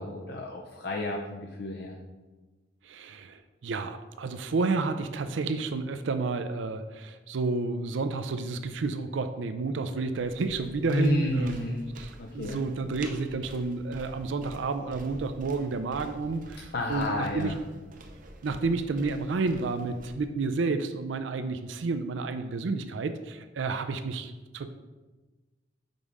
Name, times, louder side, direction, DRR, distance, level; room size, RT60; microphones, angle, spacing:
voice 1, 0.0-2.0 10.9-11.9 12.2-12.6 16.7-17.6, left 2 dB, 55° left, 1 dB, 0.6 m, -31 dB
voice 2, 2.8-17.5 18.4-24.7, right 3 dB, 80° right, 9 dB, 0.4 m, -30 dB
sound 1, 10.1-20.1, right 1 dB, 45° right, 0.7 m, -47 dB
5.3 x 4.8 x 5.4 m, 1.2 s
head